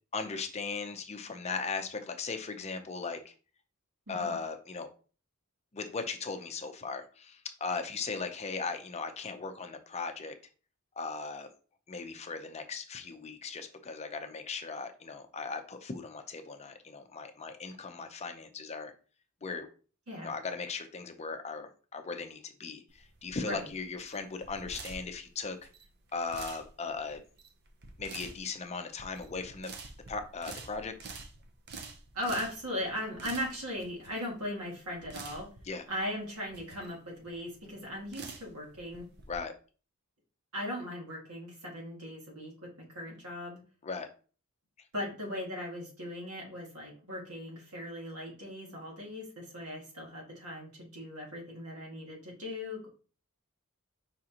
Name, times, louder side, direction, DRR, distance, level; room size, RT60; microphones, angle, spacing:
voice 1, 0.1-3.3 4.1-4.9 5.7-10.3 11.0-11.5 11.9-18.9 19.4-19.7 20.2-25.6 26.1-27.2 28.0-29.7 30.1-30.9 35.7-35.8 39.3-39.5 43.8-44.1, left 4 dB, 30° left, 7 dB, 0.5 m, -38 dB
sound 1, 22.9-39.4, right 4 dB, 50° right, 0.7 m, -48 dB
voice 2, 32.1-35.5 35.9-39.1 40.5-43.6 44.9-52.9, left 1 dB, 80° right, -2 dB, 2.1 m, -38 dB
5.0 x 3.7 x 2.8 m, 0.38 s
head